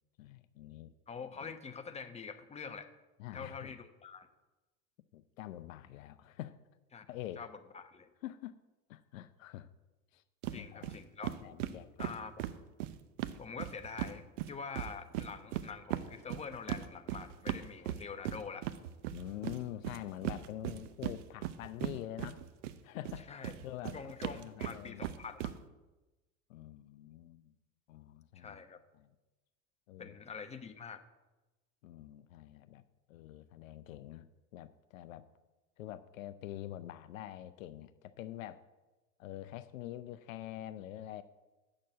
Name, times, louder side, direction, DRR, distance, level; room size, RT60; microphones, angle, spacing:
voice 1, 0.2-0.9 3.2-3.7 5.1-6.6 7.1-7.4 8.2-8.6 8.9-9.7 10.1-10.2 10.5-11.0 11.3-12.1 17.8-17.9 19.1-22.4 22.8-25.0 26.5-27.5 27.9-28.6 29.0-29.1 29.9-30.2 31.8-32.8 33.1-35.3 35.8-38.6 39.2-41.2, left 13 dB, 70° left, 13 dB, 0.6 m, -46 dB
voice 2, 1.1-2.9 3.3-4.3 6.9-7.0 7.4-7.5 7.7-8.1 10.5-11.4 12.0-12.4 13.4-18.7 23.3-23.6 23.9-25.5 28.3-28.8 30.0-31.0, left 5 dB, 15° left, 8 dB, 0.9 m, -45 dB
sound 1, 10.4-10.6 10.8-11.0 11.2-14.1 14.4-22.8 23.0-25.5, right 13 dB, 60° right, 0.7 m, -38 dB
7.6 x 6.5 x 8.1 m, 1.1 s
figure-of-eight pair, 75°, 42 cm